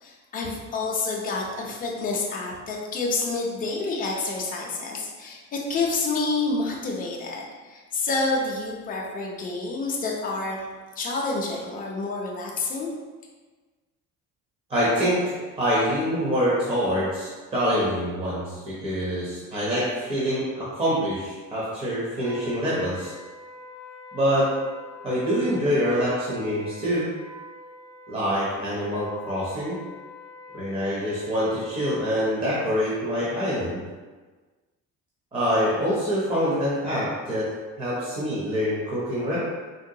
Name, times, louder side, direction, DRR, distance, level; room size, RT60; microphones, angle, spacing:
voice 1, 0.0-10.7 11.0-12.9, left 3 dB, 30° left, -1 dB, 0.4 m, -28 dB
voice 2, 14.7-23.1 24.1-24.5 25.0-27.1 28.1-29.8 30.5-33.8 35.3-37.5 37.8-39.4, equal, 20° right, -8 dB, 0.6 m, -25 dB
Wind instrument woodwind instrument, 22.1-32.6, left 3 dB, 60° right, 0.7 m, -45 dB
3.7 x 2.1 x 2.6 m, 1.3 s
cardioid pair, 170°, 30 cm